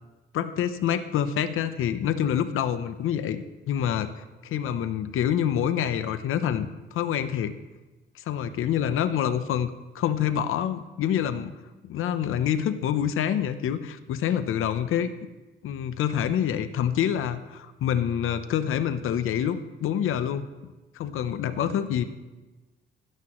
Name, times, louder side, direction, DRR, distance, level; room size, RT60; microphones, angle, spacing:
voice 1, 0.3-4.1 4.4-7.5 8.2-11.5 11.9-15.1 15.6-20.5 20.9-22.0, left 9 dB, 80° left, 11 dB, 0.7 m, -26 dB
15.5 x 12.5 x 3.1 m, 1.2 s
cardioid pair, 120°, 21 cm